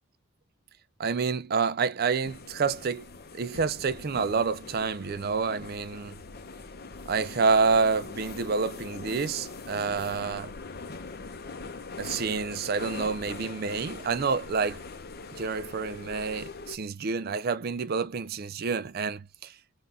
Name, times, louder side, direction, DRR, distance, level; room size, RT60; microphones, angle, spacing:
voice 1, 1.0-3.1 3.3-6.1 7.1-10.5 12.0-14.8 15.3-19.5, right 5 dB, 45° right, 0.4 m, -28 dB
sound 1, 2.2-16.8, left 3 dB, 50° left, 0.7 m, -42 dB
3.7 x 2.4 x 4.0 m
head